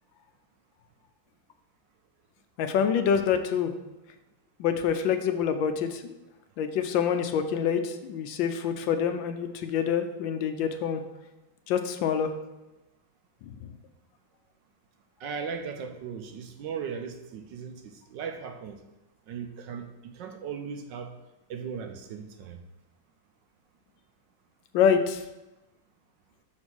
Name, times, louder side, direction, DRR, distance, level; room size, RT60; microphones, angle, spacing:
voice 1, 2.6-3.7 4.6-6.1 6.6-11.0 11.7-12.3 13.5-13.7 24.7-25.2, left 7 dB, 75° left, 8 dB, 1.3 m, -26 dB
voice 2, 15.2-18.8 19.3-21.1 21.5-22.6, right 6 dB, 70° right, 5 dB, 1.2 m, -37 dB
6.2 x 4.4 x 6.1 m, 1.0 s
omnidirectional pair, 2.2 m